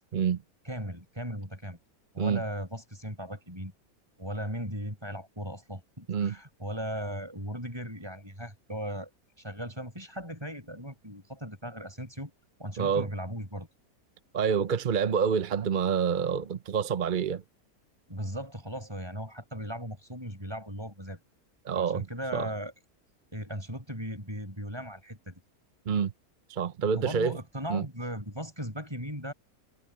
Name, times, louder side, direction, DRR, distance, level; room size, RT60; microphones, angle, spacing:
voice 1, 0.6-1.8 2.1-3.7 4.2-9.1 9.4-12.3 12.6-13.7 18.1-21.2 21.7-22.7 23.3-25.4 27.0-29.3, equal, 15° right, 6.5 m, -37 dB
voice 2, 12.8-13.1 14.3-17.4 21.6-22.1 22.3-22.5 25.9-26.1 26.5-27.3 27.7-27.8, right 7 dB, 45° right, 0.7 m, -27 dB
omnidirectional pair, 1.6 m